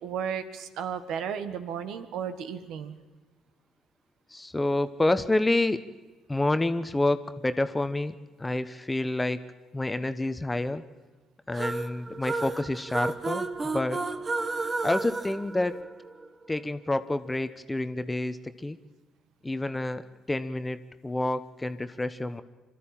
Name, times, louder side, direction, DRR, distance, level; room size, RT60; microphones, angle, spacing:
voice 1, 0.0-3.0, right 7 dB, 65° right, 10 dB, 1.6 m, -34 dB
voice 2, 4.3-5.8 6.3-8.1 8.4-9.4 9.7-10.8 11.5-14.0 14.8-15.8 16.5-18.8 19.4-22.4, left 2 dB, 15° left, 11 dB, 1.1 m, -28 dB
sound 1, 11.5-16.3, right 3 dB, 35° right, 1.5 m, -32 dB
25.0 x 13.0 x 8.9 m, 1.3 s
hypercardioid pair, 55°, 0 cm